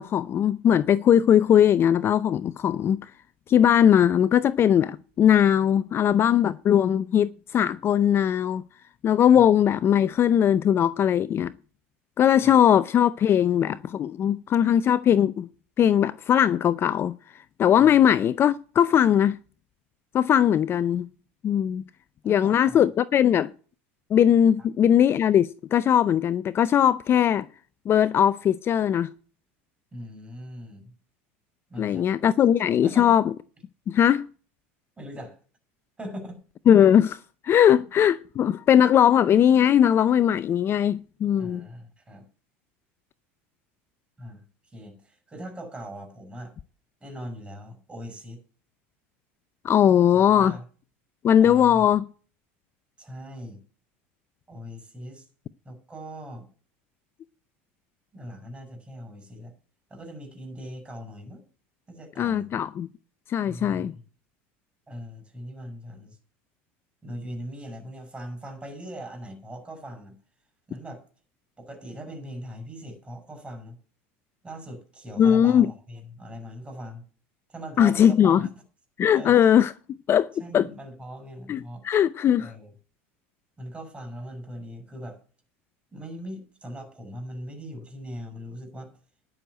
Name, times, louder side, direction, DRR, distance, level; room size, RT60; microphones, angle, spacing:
voice 1, 0.0-3.1 3.5-8.6 9.0-11.5 12.2-15.5 15.8-17.1 17.6-19.4 20.1-21.1 21.4-21.8 22.2-23.5 24.1-27.5 27.9-29.1 31.8-33.3 33.9-34.3 36.7-41.6 49.6-50.5 51.2-52.0 62.2-62.9 63.3-63.9 75.2-75.7 77.8-78.4 79.0-79.7 80.1-80.7 81.5-82.5, left 9 dB, 35° left, 0.5 m, -20 dB
voice 2, 22.2-22.9 29.9-30.9 31.7-32.1 32.8-33.2 35.0-35.4 36.0-36.4 41.4-42.3 44.2-46.5 47.0-48.4 50.1-50.6 51.4-51.9 53.0-53.6 54.5-55.3 55.6-56.5 58.1-59.5 59.9-61.4 61.9-62.5 63.4-64.0 64.9-66.2 67.0-70.1 70.7-71.0 71.6-73.8 74.4-77.0 77.5-78.5 79.1-79.4 80.4-81.8 82.4-82.7 83.6-85.2 85.9-88.9, equal, 15° right, 6.6 m, -40 dB
11.0 x 6.4 x 8.2 m
supercardioid pair, 100°, 7 cm